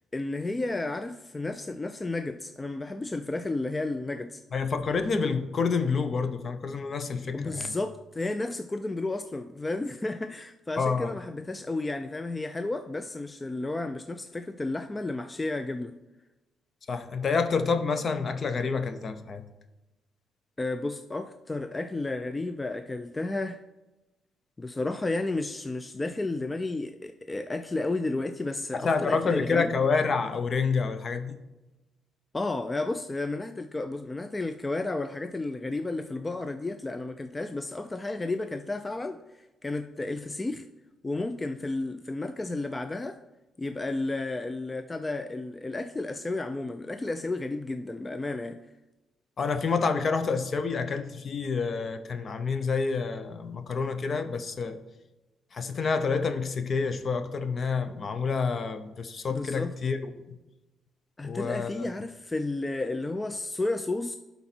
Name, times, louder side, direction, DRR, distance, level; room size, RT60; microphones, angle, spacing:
voice 1, 0.1-4.4 7.3-16.0 20.6-23.6 24.6-29.7 32.3-39.2 39.6-40.7 41.0-43.2 43.6-48.7 59.3-59.7 61.2-64.2, left 2 dB, 20° left, 9 dB, 0.4 m, -32 dB
voice 2, 4.5-7.7 10.8-11.1 16.9-19.4 28.7-31.4 49.4-54.8 55.5-60.4 61.2-61.9, left 5 dB, 45° left, 10 dB, 0.7 m, -28 dB
11.5 x 4.0 x 4.4 m, 1.1 s
cardioid pair, 90°, 0 cm